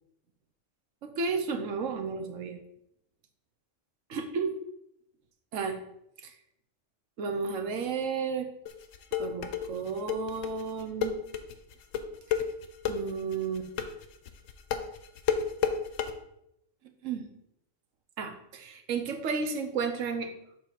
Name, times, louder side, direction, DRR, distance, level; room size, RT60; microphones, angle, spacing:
voice 1, 1.0-2.6 4.1-4.5 5.5-5.8 6.2-6.3 7.2-8.5 9.2-11.2 12.9-13.7 17.0-17.3 18.2-20.3, right 5 dB, 85° right, 6 dB, 1.2 m, -32 dB
sound 1, 8.7-16.1, left 8 dB, 85° left, 1.0 m, -30 dB
7.5 x 2.9 x 5.8 m, 0.78 s
omnidirectional pair, 1.3 m